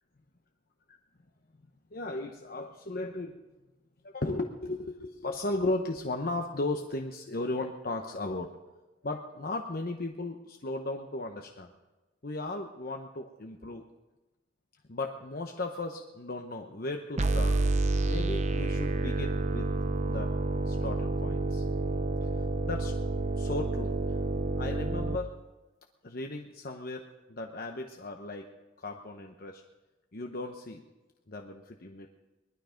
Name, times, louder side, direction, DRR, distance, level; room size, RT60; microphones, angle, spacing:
voice 1, 1.9-3.4 4.0-8.5 9.0-11.7 12.2-13.8 14.9-17.6 18.1-19.7 20.0-20.3 20.7-21.7 22.6-22.9 23.4-24.2 24.6-25.3 26.0-28.5 28.8-29.6 30.1-30.8 31.3-32.1, left 2 dB, 55° left, 3 dB, 0.9 m, -36 dB
sound 1, 17.2-25.2, right 2 dB, 40° right, 0.7 m, -29 dB
20.0 x 12.0 x 5.1 m, 1.1 s
head